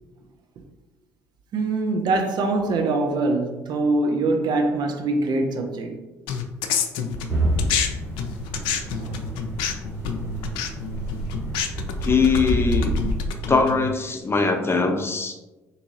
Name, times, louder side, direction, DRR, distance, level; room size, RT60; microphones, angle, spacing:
voice 1, 1.5-6.0 9.0-9.2, right 2 dB, 50° right, 0.5 m, -23 dB
sound 1, 6.3-7.9 8.2-13.9, left 6 dB, 65° left, 0.4 m, -28 dB
sound 2, 7.3-13.3, equal, 90° right, 1.1 m, -28 dB
voice 2, 12.0-12.9 13.5-15.4, left 4 dB, 25° left, 0.7 m, -21 dB
3.9 x 2.7 x 2.6 m
figure-of-eight pair, 50°, 9 cm